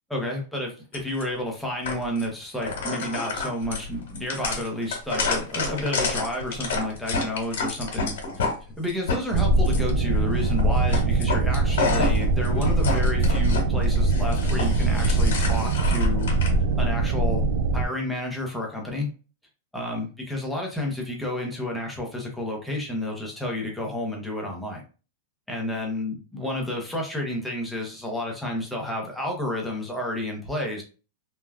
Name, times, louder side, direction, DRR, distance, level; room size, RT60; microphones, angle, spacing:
voice 1, 0.1-8.1 8.8-16.3 16.8-17.4 17.7-19.1 19.7-24.8 25.5-30.8, left 1 dB, ahead, -1 dB, 0.6 m, -30 dB
sound 1, 0.9-1.2 1.8-2.2 2.6-8.5 8.9-9.9 10.4-10.6 10.9-13.6 13.9-16.5, left 4 dB, 90° left, 1.1 m, -29 dB
sound 2, 9.3-17.9, right 2 dB, 70° right, 0.3 m, -22 dB
3.2 x 2.2 x 2.3 m, 0.35 s
supercardioid pair, 175°, 0 cm